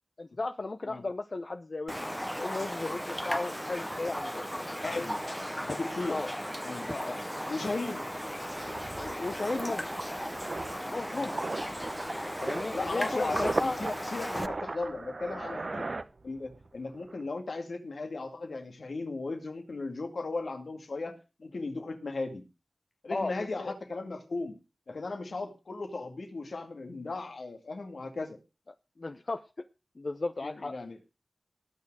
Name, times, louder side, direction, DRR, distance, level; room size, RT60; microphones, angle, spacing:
voice 1, 0.2-4.7 6.1-6.3 6.9-7.2 9.0-10.4 10.9-11.4 12.4-13.8 23.1-23.3 23.6-23.8 29.0-29.7 30.0-30.7, left 3 dB, 60° left, 8 dB, 0.8 m, -35 dB
Raindrop, 1.9-14.5, equal, 5° left, 0.8 m, -36 dB
voice 2, 4.8-5.2 5.6-6.2 6.6-6.9 7.5-8.1 11.1-11.2 12.7-15.9 16.2-22.4 23.0-24.5 24.9-28.4 30.4-31.0, left 3 dB, 80° left, 6 dB, 2.2 m, -36 dB
sound 1, 7.6-16.7 16.9-17.2, right 3 dB, 60° right, 1.0 m, -38 dB
19.5 x 6.5 x 4.8 m, 0.30 s
wide cardioid pair, 50°, 0 cm